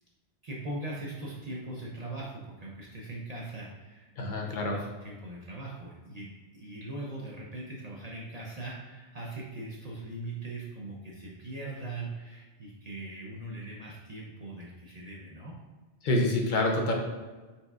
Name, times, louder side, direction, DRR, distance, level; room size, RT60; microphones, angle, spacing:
voice 1, 0.4-4.1 4.4-15.5, right 2 dB, 45° right, -4 dB, 0.6 m, -40 dB
voice 2, 4.2-4.8 16.0-16.9, left 1 dB, 55° left, 0 dB, 0.7 m, -27 dB
4.2 x 3.7 x 2.3 m, 1.3 s
omnidirectional pair, 1.1 m